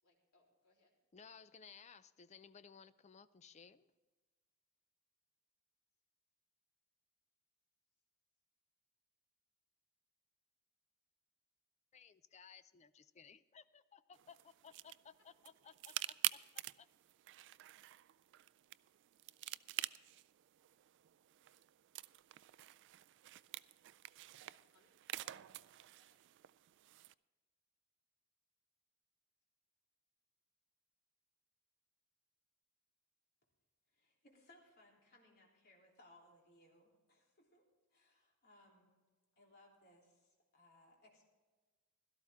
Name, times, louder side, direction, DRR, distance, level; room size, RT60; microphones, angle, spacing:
voice 1, 0.0-1.0 21.5-21.6 23.4-23.6 24.7-24.9 25.2-26.3, left 2 dB, 85° left, -2 dB, 3.7 m, -73 dB
voice 2, 1.1-3.9 11.9-16.4 16.8-16.9, left 6 dB, 30° left, 14 dB, 0.4 m, -59 dB
sound 1, 14.1-27.1, right 15 dB, 55° right, 0.3 m, -47 dB
voice 3, 33.9-39.0 39.4-41.3, left 1 dB, 45° left, -1 dB, 3.3 m, -67 dB
16.5 x 13.0 x 3.6 m, 1.3 s
head